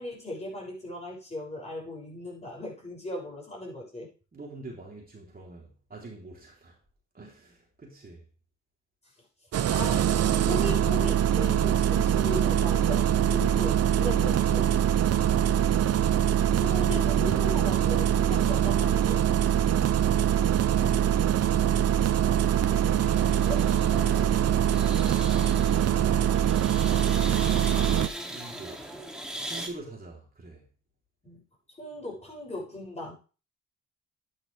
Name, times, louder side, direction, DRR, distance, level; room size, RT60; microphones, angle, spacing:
voice 1, 0.0-4.1 9.7-10.1 10.4-14.7 16.6-19.2 23.5-23.6 31.2-31.4 31.8-33.2, left 1 dB, 20° left, 7.1 m, -37 dB
voice 2, 4.3-6.8 7.1-8.2 15.1-16.4 23.8-26.5 27.0-28.9 29.4-30.7, right 2 dB, 30° right, 3.8 m, -44 dB
Engine starting, 9.5-28.1, right 10 dB, 55° right, 0.8 m, -23 dB
sound 1, 22.7-29.7, right 1 dB, ahead, 2.8 m, -39 dB
11.0 x 10.5 x 3.5 m
cardioid pair, 90°, 30 cm